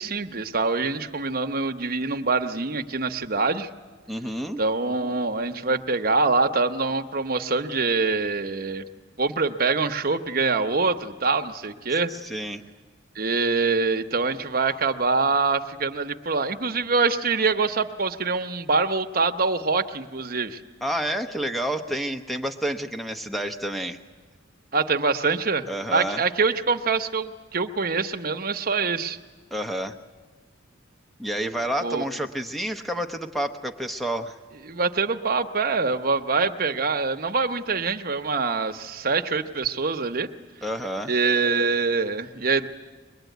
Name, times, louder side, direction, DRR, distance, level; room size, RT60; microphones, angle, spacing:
voice 1, 0.0-3.7 4.6-8.8 9.2-12.1 13.1-20.6 24.7-29.2 31.8-32.0 34.6-40.3 41.1-42.7, right 4 dB, 45° right, 5 dB, 1.0 m, -24 dB
voice 2, 4.1-4.6 12.1-12.6 20.8-24.0 25.7-26.3 29.5-30.0 31.2-34.4 40.6-41.1, right 1 dB, ahead, 5 dB, 0.9 m, -29 dB
23.0 x 21.0 x 9.3 m, 1.3 s
head